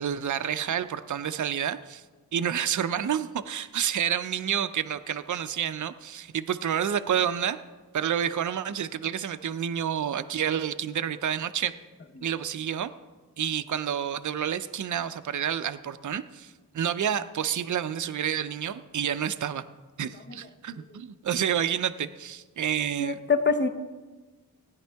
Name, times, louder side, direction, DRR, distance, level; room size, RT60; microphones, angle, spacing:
voice 1, 0.0-2.0 2.3-7.6 7.9-11.8 12.2-12.9 13.4-19.6 20.0-23.2, right 9 dB, 50° right, 11 dB, 0.6 m, -29 dB
voice 2, 23.0-23.7, left 5 dB, 30° left, 9 dB, 0.8 m, -25 dB
16.5 x 9.9 x 3.5 m, 1.3 s
cardioid pair, 65°, 37 cm